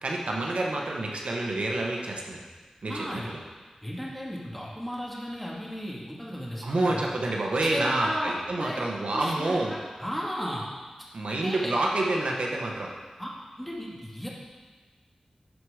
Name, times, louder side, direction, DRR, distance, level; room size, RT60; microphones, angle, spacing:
voice 1, 0.0-2.4 2.8-3.4 6.6-9.7 11.1-12.9, right 2 dB, 75° right, -1 dB, 1.2 m, -28 dB
voice 2, 2.9-3.3 3.8-7.0 7.6-10.7 11.3-11.7 13.2-13.3 13.6-14.3, equal, 5° left, -5 dB, 2.0 m, -35 dB
12.0 x 4.7 x 5.0 m, 1.4 s
wide cardioid pair, 90°, 2 cm